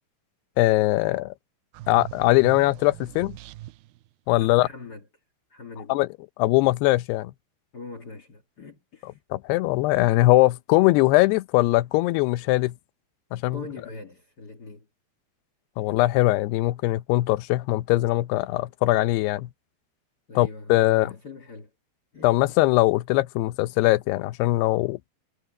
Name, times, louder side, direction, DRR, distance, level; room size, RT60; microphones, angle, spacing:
voice 1, 0.6-1.3 1.9-3.4 4.3-4.7 5.9-6.1 6.4-7.3 9.3-12.7 13.3-13.6 15.8-19.5 20.4-21.1 22.2-25.0, left 19 dB, 85° left, 2.7 m, -21 dB
sound 1, 1.7-4.1, right 15 dB, 80° right, 2.1 m, -41 dB
voice 2, 4.3-5.1 5.5-5.9 7.7-9.2 13.5-14.9 15.8-15.9 20.3-21.7 22.1-22.6, left 3 dB, 60° left, 1.0 m, -41 dB
omnidirectional pair, 4.6 m